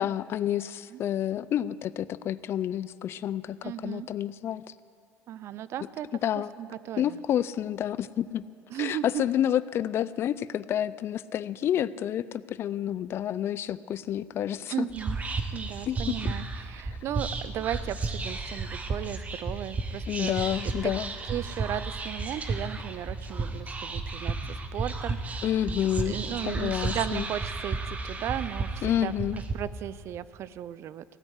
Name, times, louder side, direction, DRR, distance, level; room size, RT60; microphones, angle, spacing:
voice 1, 0.0-4.6 6.2-6.5 7.0-8.5 8.8-14.9 15.9-16.3 20.1-21.1 25.4-26.2 26.5-27.3 28.8-29.4, left 10 dB, 50° left, 18 dB, 0.4 m, -29 dB
voice 2, 3.6-4.1 5.3-6.1 6.6-7.2 8.7-9.2 14.7-15.2 15.5-20.4 20.6-20.9 21.3-24.4 24.7-25.5 26.1-28.7 29.0-29.1 29.5-31.0, right 11 dB, 60° right, 17 dB, 0.5 m, -35 dB
Whispering, 14.9-29.5, right 3 dB, 30° right, 1.3 m, -33 dB
16.5 x 9.1 x 8.2 m, 2.3 s
cardioid pair, 105°, 5 cm